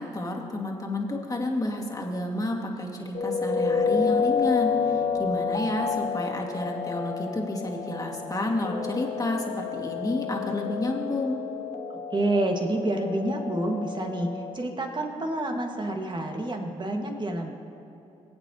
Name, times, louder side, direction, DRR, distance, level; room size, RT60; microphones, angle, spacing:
voice 1, 0.0-11.4, left 1 dB, 20° left, -1 dB, 2.2 m, -30 dB
sound 1, 3.1-14.5, left 6 dB, 40° left, 1.2 m, -29 dB
voice 2, 11.9-17.5, right 1 dB, 30° right, 2 dB, 1.9 m, -28 dB
21.5 x 8.6 x 3.1 m, 2.9 s
hypercardioid pair, 45°, 16 cm